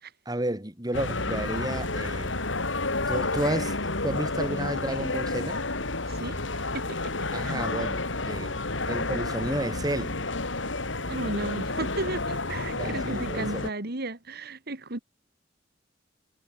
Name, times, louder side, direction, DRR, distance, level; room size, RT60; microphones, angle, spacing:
voice 1, 0.3-2.4 3.1-5.6 7.3-8.6 8.9-10.2 12.6-13.6, right 1 dB, 20° right, 3.7 m, -32 dB
sound 1, 0.9-13.7, left 2 dB, 80° left, 4.2 m, -30 dB
voice 2, 6.1-7.1 7.4-7.6 11.1-15.0, right 2 dB, 55° right, 2.5 m, -34 dB
head